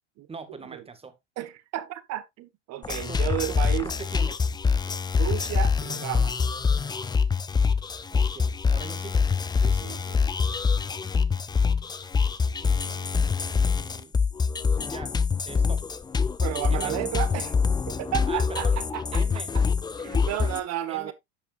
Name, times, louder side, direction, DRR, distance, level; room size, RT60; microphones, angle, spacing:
voice 1, 0.3-1.2 3.1-4.5 4.9-5.0 8.1-9.3 12.6-14.1 14.8-15.1 15.4-15.8 16.7-17.0 17.3-17.4 18.3-18.8 19.1-19.5 20.9-21.1, right 5 dB, 15° right, 1.6 m, -43 dB
voice 2, 1.4-3.9 5.2-6.5 9.6-10.3 16.4-17.5 17.9-19.2 20.0-21.1, right 14 dB, 45° right, 1.4 m, -32 dB
sound 1, 2.8-20.6, left 5 dB, 10° left, 0.5 m, -25 dB
11.0 x 6.9 x 2.5 m
supercardioid pair, 115°, 36 cm